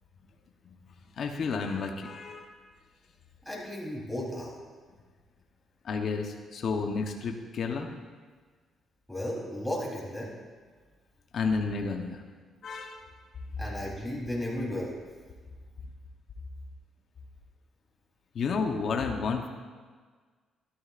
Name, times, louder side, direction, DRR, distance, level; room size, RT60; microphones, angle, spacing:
voice 1, 1.2-2.5 5.8-7.9 11.3-12.2 12.6-13.0 18.3-19.5, left 4 dB, 60° left, 3 dB, 1.0 m, -31 dB
voice 2, 3.5-4.5 9.1-10.3 13.6-14.9, left 1 dB, 5° left, -4 dB, 3.7 m, -34 dB
13.0 x 12.5 x 2.5 m, 1.5 s
cardioid pair, 90°, 0 cm